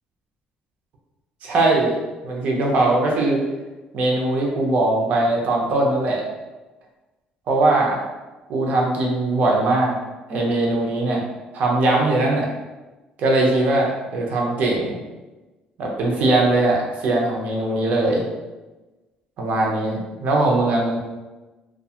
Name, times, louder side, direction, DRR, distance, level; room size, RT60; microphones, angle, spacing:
voice 1, 1.4-2.0 2.2-3.4 3.9-6.2 7.5-8.0 8.5-9.9 10.3-11.2 11.5-12.5 13.2-15.0 15.8-18.3 19.4-21.0, right 2 dB, 55° right, -1 dB, 0.6 m, -20 dB
2.3 x 2.2 x 2.7 m, 1.1 s
cardioid pair, 160°, 3 cm